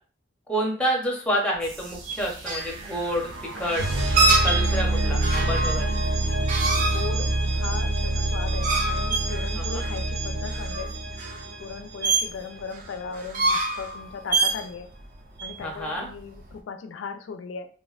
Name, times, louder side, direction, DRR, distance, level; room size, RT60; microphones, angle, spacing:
voice 1, 0.5-3.3 3.5-3.8 4.4-6.0 9.6-9.8 15.6-16.1, equal, 5° left, -1 dB, 0.5 m, -28 dB
sound 1, 1.6-16.5, right 3 dB, 45° right, 0.4 m, -27 dB
sound 2, 1.6-12.4, right 1 dB, 85° right, 0.6 m, -27 dB
voice 2, 6.8-10.9 11.6-14.9 15.4-17.7, left 5 dB, 80° left, 7 dB, 0.3 m, -37 dB
3.3 x 2.1 x 2.3 m, 0.41 s
head